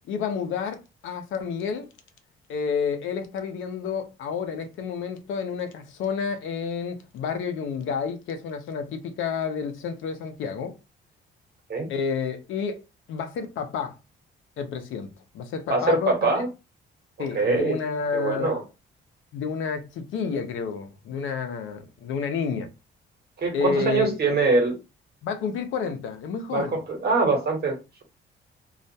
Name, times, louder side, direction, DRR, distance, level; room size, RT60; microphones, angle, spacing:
voice 1, 0.1-1.9 2.5-10.7 11.9-12.8 13.1-14.0 14.6-15.1 15.3-16.1 17.2-18.5 19.3-22.7 23.5-24.2 25.2-26.7, left 6 dB, 80° left, 0.6 m, -30 dB
voice 2, 15.7-16.5 17.3-17.8 18.1-18.6 23.4-24.8 26.5-28.0, right 3 dB, 55° right, 1.0 m, -23 dB
2.4 x 2.2 x 2.7 m
cardioid pair, 90°, 20 cm